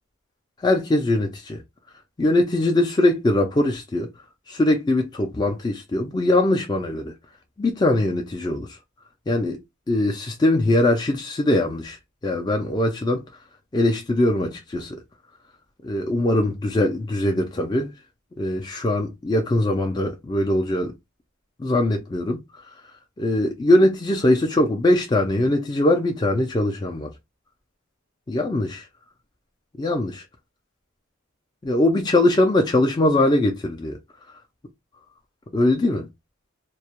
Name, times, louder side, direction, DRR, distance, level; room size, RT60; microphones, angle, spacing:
voice 1, 0.6-1.6 2.2-4.1 4.5-7.1 7.6-8.7 9.3-9.6 9.9-12.0 12.2-13.2 13.7-15.0 15.8-17.9 18.4-20.9 21.6-22.6 23.2-27.1 28.3-28.9 29.8-30.2 31.6-34.0 35.5-36.1, left 1 dB, 20° left, 0.4 m, -21 dB
2.2 x 2.1 x 2.8 m
head